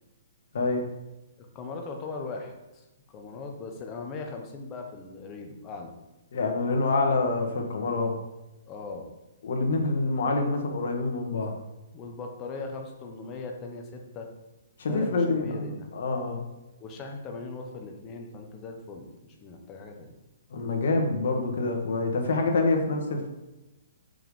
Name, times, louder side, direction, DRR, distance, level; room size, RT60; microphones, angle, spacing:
voice 1, 1.5-2.8 3.1-5.9 8.7-9.1 11.9-14.3 14.9-15.9 16.8-20.1, left 3 dB, 25° left, 3 dB, 1.1 m, -39 dB
voice 2, 6.3-8.2 9.4-11.5 14.8-16.4 20.5-23.3, left 3 dB, 65° left, 3 dB, 1.4 m, -26 dB
6.0 x 5.0 x 5.3 m, 1.0 s
hypercardioid pair, 150°, 0 cm